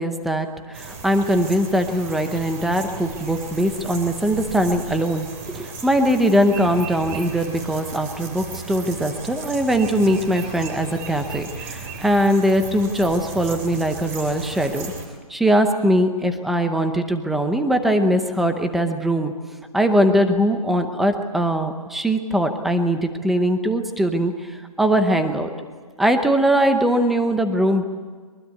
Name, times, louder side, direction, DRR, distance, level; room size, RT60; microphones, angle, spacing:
voice 1, 0.0-14.9 15.3-19.3 19.7-25.5 26.0-27.8, equal, ahead, 7 dB, 0.7 m, -21 dB
sound 1, 0.7-15.1, right 4 dB, 25° right, 3.3 m, -36 dB
23.5 x 23.0 x 8.3 m, 1.5 s
hypercardioid pair, 170°, 19 cm